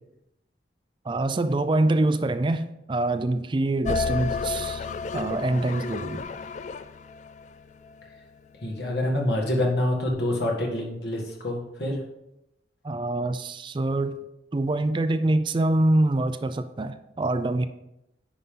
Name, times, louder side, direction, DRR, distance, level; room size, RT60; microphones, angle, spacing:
voice 1, 1.0-4.9 5.1-6.2 12.8-14.2 14.5-17.7, right 2 dB, 30° right, 0.4 m, -25 dB
sound 1, 3.9-8.2, left 5 dB, 45° left, 0.3 m, -31 dB
voice 2, 8.6-12.0, left 1 dB, 70° left, 1.9 m, -26 dB
9.8 x 5.3 x 3.8 m
head